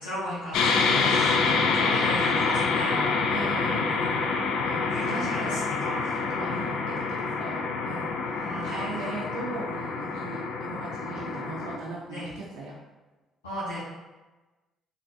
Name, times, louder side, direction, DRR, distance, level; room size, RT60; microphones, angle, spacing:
voice 1, 0.0-3.3 3.7-4.2 4.9-6.3 8.3-9.1 12.1-12.3 13.4-13.8, equal, 85° left, -11 dB, 0.7 m, -36 dB
sound 1, 0.5-11.8, left 4 dB, 65° left, 0.3 m, -27 dB
voice 2, 0.9-1.8 3.3-4.4 4.6-5.6 6.3-12.8, right 3 dB, 70° right, -4 dB, 0.5 m, -38 dB
3.7 x 2.4 x 2.6 m, 1.2 s
hypercardioid pair, 50°, 0 cm